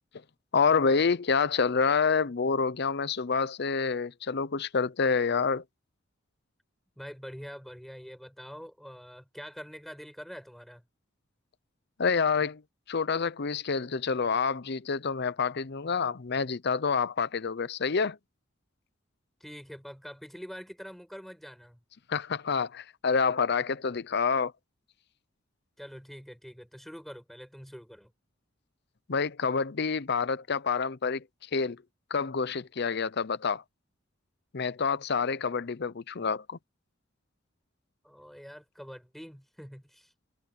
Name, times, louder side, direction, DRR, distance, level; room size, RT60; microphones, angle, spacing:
voice 1, 0.5-5.6 12.0-12.6 12.9-18.2 22.1-24.5 29.1-31.2 31.5-31.8 32.1-33.6 34.5-36.6, left 5 dB, 55° left, 0.7 m, -27 dB
voice 2, 7.0-10.8 19.4-21.8 25.8-28.1 38.0-40.1, equal, ahead, 5.6 m, -45 dB
head